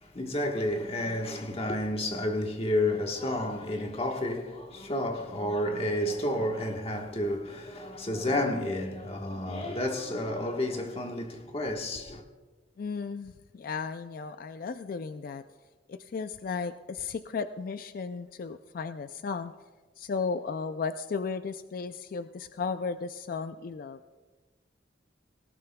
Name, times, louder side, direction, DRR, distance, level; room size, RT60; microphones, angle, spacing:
voice 1, 0.0-12.2, left 1 dB, 30° left, 1.3 m, -31 dB
voice 2, 12.8-15.4 15.9-19.5 20.0-24.0, left 5 dB, 50° left, 0.3 m, -35 dB
18.5 x 18.5 x 2.3 m
head